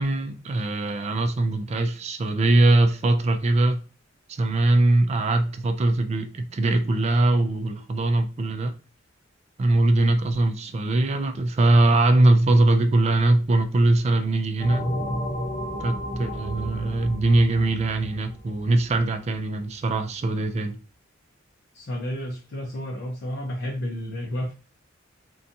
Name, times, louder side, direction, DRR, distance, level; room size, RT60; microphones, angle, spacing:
voice 1, 0.0-3.8 4.3-8.7 9.6-14.9 15.8-20.8, right 2 dB, 35° right, 0.3 m, -21 dB
sound 1, 14.6-19.0, equal, 30° left, 0.8 m, -32 dB
voice 2, 21.7-24.5, equal, 55° left, 0.5 m, -31 dB
2.6 x 2.2 x 2.6 m
head